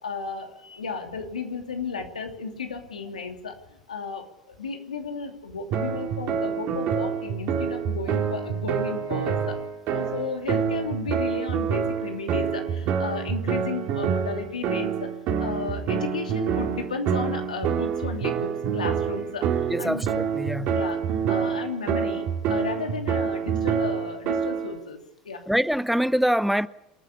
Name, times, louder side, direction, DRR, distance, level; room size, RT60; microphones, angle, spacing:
voice 1, 0.0-3.6 3.9-9.6 9.9-15.1 15.4-20.0 20.7-21.0 21.3-25.0 25.2-25.4, left 4 dB, 85° left, 2.9 m, -34 dB
sound 1, 5.7-24.8, right 7 dB, 50° right, 3.7 m, -27 dB
voice 2, 19.7-20.7 25.5-26.7, equal, ahead, 0.7 m, -24 dB
27.0 x 10.0 x 10.0 m
hypercardioid pair, 75°, 4 cm